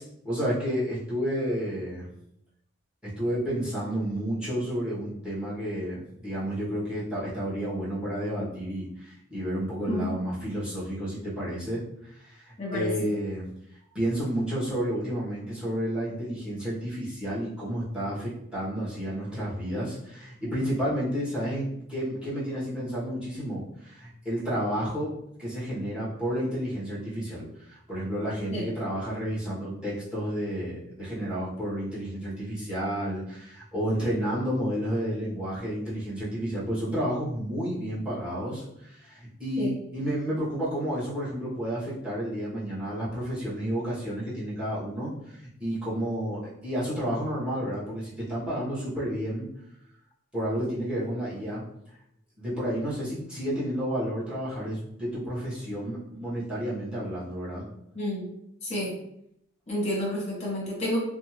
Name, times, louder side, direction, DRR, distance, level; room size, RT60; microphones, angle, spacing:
voice 1, 0.0-2.0 3.2-13.5 13.9-25.1 25.4-49.4 50.3-51.6 52.4-57.6, equal, 5° right, -9 dB, 1.0 m, -31 dB
voice 2, 12.6-13.1 28.5-28.6 39.6-39.8 57.9-58.3 58.6-58.9 59.7-61.0, left 1 dB, 30° left, -4 dB, 0.9 m, -30 dB
2.6 x 2.3 x 2.9 m, 0.77 s
head